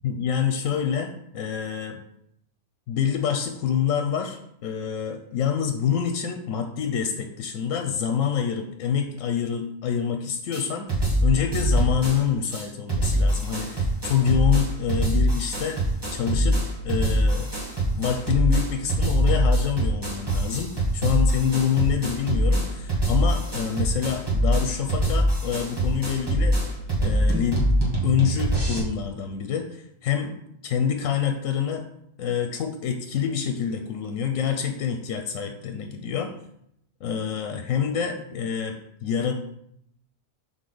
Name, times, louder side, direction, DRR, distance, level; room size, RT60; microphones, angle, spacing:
voice 1, 0.0-2.0 2.9-15.8 16.1-16.6 16.8-17.5 17.9-26.6 27.0-27.6 28.0-30.3 30.6-31.8 32.2-36.3 37.0-39.3, left 8 dB, 85° left, 5 dB, 1.0 m, -26 dB
sound 1, 10.5-10.6 10.9-12.2 12.5-12.6 12.9-28.8, right 1 dB, 20° right, 1.3 m, -23 dB
6.5 x 3.8 x 3.9 m, 0.74 s
omnidirectional pair, 1.3 m